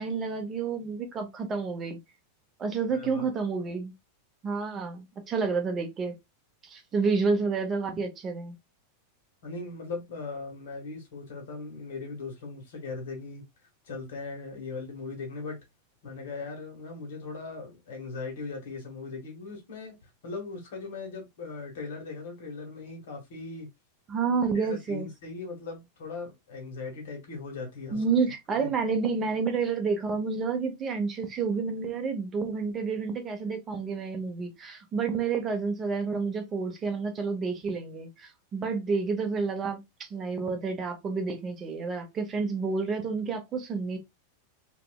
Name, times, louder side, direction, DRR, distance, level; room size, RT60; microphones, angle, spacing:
voice 1, 0.0-2.0 2.6-3.9 4.4-6.1 6.6-8.6 24.1-25.1 27.9-44.0, right 5 dB, 20° right, 0.7 m, -29 dB
voice 2, 2.9-3.3 9.4-13.4 13.8-15.6 16.0-23.7 24.5-28.0 28.6-28.7, left 3 dB, 75° left, 1.5 m, -39 dB
3.3 x 2.9 x 2.2 m
supercardioid pair, 160°, 0 cm